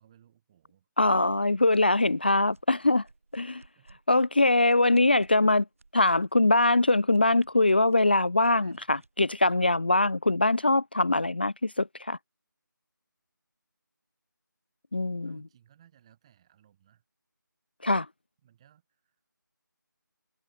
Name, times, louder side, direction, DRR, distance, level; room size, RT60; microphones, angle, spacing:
voice 1, 0.0-0.9 3.8-3.9 8.6-9.1 15.2-17.0 18.4-19.2, right 10 dB, 15° right, 5.5 m, -61 dB
voice 2, 1.0-3.0 3.3-3.6 4.1-5.6 5.9-12.2 14.9-15.4 17.8-18.1, left 2 dB, 30° left, 0.4 m, -23 dB
sound 1, 1.7-9.5, right 3 dB, 40° right, 6.7 m, -61 dB
figure-of-eight pair, 165°, 11 cm